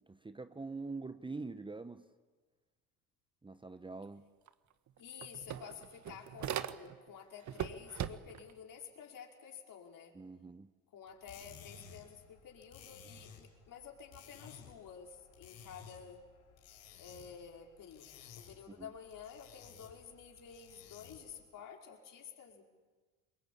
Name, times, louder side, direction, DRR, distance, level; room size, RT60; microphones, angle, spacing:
voice 1, 0.1-2.1 3.4-4.3 10.1-10.7 18.7-18.9, right 3 dB, 10° right, 1.1 m, -45 dB
sound 1, 4.5-4.6 4.9-7.1 7.5-8.5, right 10 dB, 40° right, 1.5 m, -40 dB
voice 2, 5.0-10.2 10.9-16.3 17.0-22.6, left 7 dB, 50° left, 5.2 m, -51 dB
sound 2, 11.1-21.4, left 7 dB, 75° left, 6.4 m, -56 dB
27.5 x 23.0 x 8.7 m
hypercardioid pair, 75°, 42 cm